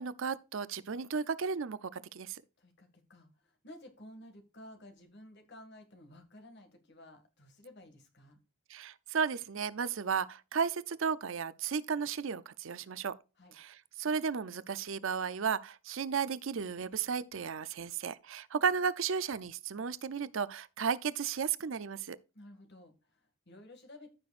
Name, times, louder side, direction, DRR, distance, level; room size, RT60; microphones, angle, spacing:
voice 1, 0.0-2.4 8.7-13.1 13.5-22.2, right 6 dB, 60° right, 0.5 m, -34 dB
voice 2, 2.6-8.4 13.4-13.5 22.3-24.1, left 1 dB, 50° left, 2.1 m, -54 dB
14.0 x 6.1 x 2.5 m
head